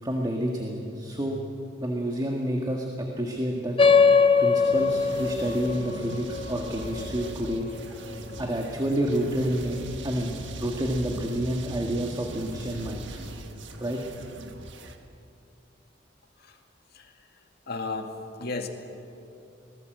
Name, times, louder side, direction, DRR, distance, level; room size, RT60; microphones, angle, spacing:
voice 1, 0.0-1.4 1.8-3.8 4.4-7.7 8.4-9.8 10.0-13.2 13.8-14.0, right 1 dB, 20° right, 1 dB, 1.8 m, -29 dB
sound 1, 3.8-8.7, left 5 dB, 30° left, 0.7 m, -23 dB
sound 2, 4.6-15.0, right 1 dB, 80° right, 1.7 m, -40 dB
voice 2, 17.7-18.1 18.4-18.7, left 3 dB, 60° left, 4 dB, 2.1 m, -33 dB
25.0 x 19.0 x 7.9 m, 2.7 s
head